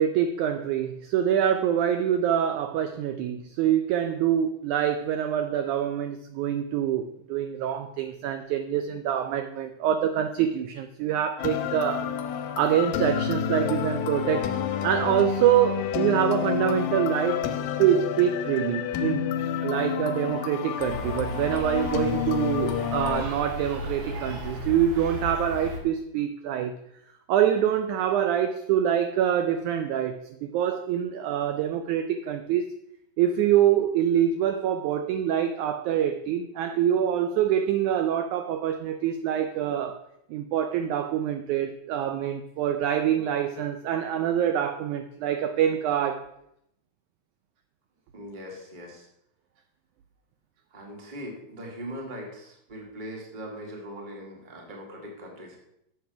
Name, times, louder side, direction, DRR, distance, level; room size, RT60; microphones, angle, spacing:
voice 1, 0.0-12.1 12.6-14.5 14.8-17.4 17.8-19.3 19.6-26.7 27.3-32.7 33.2-40.0 40.3-46.3, right 10 dB, 80° right, 1.8 m, -25 dB
sound 1, 11.4-23.2, left 9 dB, 90° left, 2.3 m, -29 dB
sound 2, 20.8-25.8, left 1 dB, 55° right, 2.9 m, -35 dB
voice 2, 48.1-49.1 50.7-55.6, equal, 20° right, 1.5 m, -40 dB
7.9 x 6.9 x 5.8 m
omnidirectional pair, 3.9 m